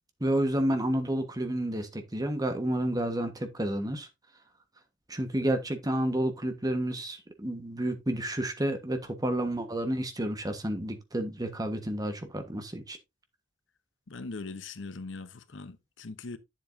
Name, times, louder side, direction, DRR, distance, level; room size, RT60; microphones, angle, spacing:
voice 1, 0.2-4.1 5.1-13.0, right 1 dB, 20° right, 1.3 m, -30 dB
voice 2, 14.1-16.4, left 3 dB, 75° left, 0.8 m, -40 dB
9.2 x 7.6 x 2.6 m
head